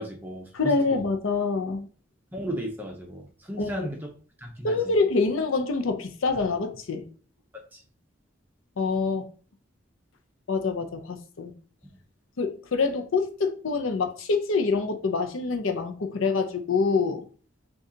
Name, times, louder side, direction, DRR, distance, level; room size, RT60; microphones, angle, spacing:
voice 1, 0.0-1.0 2.3-4.0 4.4-4.8 7.7-7.8, equal, 10° right, 0.5 m, -35 dB
voice 2, 0.5-1.9 3.6-3.9 4.6-7.1 8.8-9.3 10.5-11.5 12.4-17.2, left 4 dB, 85° left, 0.5 m, -26 dB
6.4 x 2.3 x 2.7 m
head